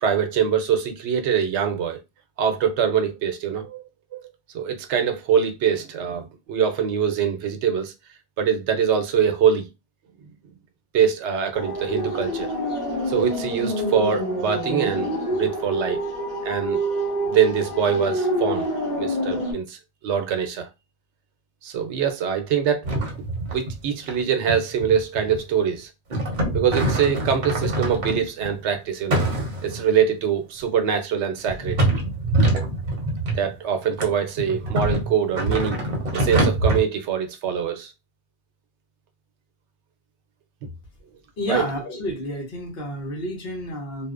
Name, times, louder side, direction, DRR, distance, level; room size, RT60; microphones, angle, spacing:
voice 1, 0.0-2.0 2.4-3.8 4.1-4.2 4.5-7.9 8.4-9.7 10.9-12.5 13.1-15.1 15.4-16.0 16.4-16.8 17.3-18.7 19.0-19.8 20.0-20.7 21.6-22.8 23.5-25.9 26.5-29.2 29.6-31.8 33.3-35.8 36.1-37.9 41.5-41.6, right 7 dB, 80° right, 0.9 m, -23 dB
sound 1, 11.5-19.5, equal, 40° left, 1.2 m, -27 dB
sound 2, 22.8-23.8 24.0-24.2 24.5-25.5 26.1-28.5 29.1-29.9 30.6-30.7 31.5-33.5 34.0-36.8, right 1 dB, 50° right, 0.8 m, -24 dB
voice 2, 41.4-44.1, left 1 dB, 60° left, 1.0 m, -30 dB
2.6 x 2.1 x 2.4 m
omnidirectional pair, 1.2 m